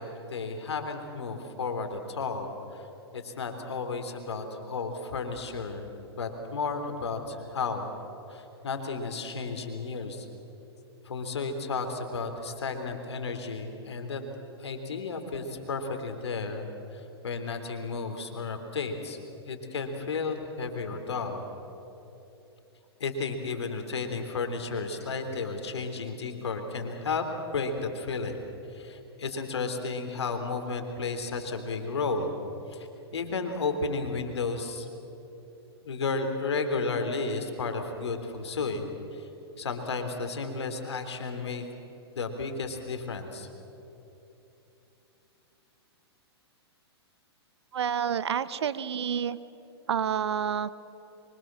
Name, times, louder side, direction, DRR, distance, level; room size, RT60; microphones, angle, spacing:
voice 1, 0.0-2.9 3.1-5.9 6.2-8.0 8.3-10.3 11.1-14.2 14.6-19.2 19.5-21.4 23.0-27.3 27.5-28.4 28.7-32.3 32.7-34.9 35.8-38.8 39.1-39.3 39.6-41.7 42.2-43.5, left 4 dB, 80° left, 6 dB, 3.6 m, -33 dB
voice 2, 47.7-49.4 49.9-50.7, right 8 dB, 75° right, 15 dB, 1.1 m, -29 dB
25.0 x 24.5 x 7.7 m, 3.0 s
hypercardioid pair, 120°, 14 cm